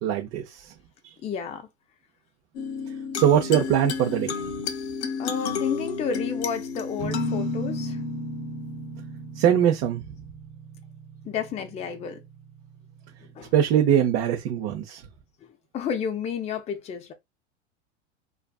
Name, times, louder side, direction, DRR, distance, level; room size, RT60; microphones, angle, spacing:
voice 1, 0.0-0.6 3.1-4.3 9.4-10.0 13.5-15.0, right 9 dB, 45° right, 0.6 m, -22 dB
voice 2, 1.2-1.7 5.2-8.0 11.3-12.2 13.4-13.5 15.7-17.1, left 7 dB, 20° left, 0.4 m, -31 dB
sound 1, 2.5-9.5, left 5 dB, 70° left, 0.6 m, -32 dB
sound 2, 7.0-14.6, right 6 dB, 75° right, 0.9 m, -39 dB
2.4 x 2.4 x 2.3 m
hypercardioid pair, 105°, 35 cm